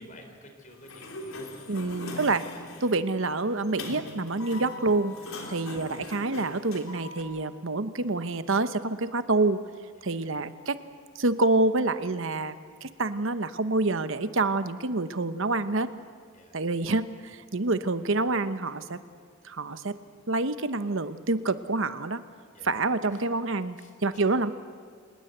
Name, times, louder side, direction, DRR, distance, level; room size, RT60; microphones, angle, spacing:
voice 1, 0.0-1.8 2.1-2.3 5.4-5.7 10.0-10.3 16.3-16.6 22.5-22.8 23.1-23.3 23.8-24.2, left 1 dB, 35° left, 4 dB, 4.0 m, -53 dB
Sliding door, 0.7-7.2, left 2 dB, 75° left, 3.6 m, -41 dB
voice 2, 1.7-2.4 2.8-5.1 5.5-9.6 10.0-10.8 11.1-12.5 12.8-15.9 16.5-19.0 19.4-20.0 20.3-22.2 22.6-23.8 24.0-24.5, right 2 dB, 65° right, 12 dB, 0.9 m, -27 dB
26.0 x 20.0 x 8.0 m, 2.1 s
head